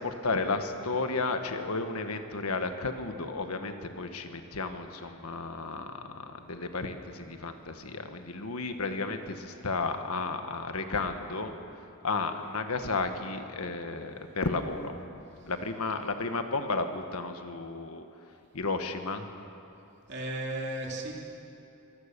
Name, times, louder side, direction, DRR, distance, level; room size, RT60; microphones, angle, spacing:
voice 1, 0.0-11.6 12.0-14.9 15.5-18.0 18.5-19.3, left 3 dB, 85° left, 7 dB, 1.5 m, -33 dB
voice 2, 20.1-21.1, right 1 dB, 50° right, -1 dB, 3.2 m, -34 dB
23.5 x 17.0 x 6.8 m, 2.8 s
head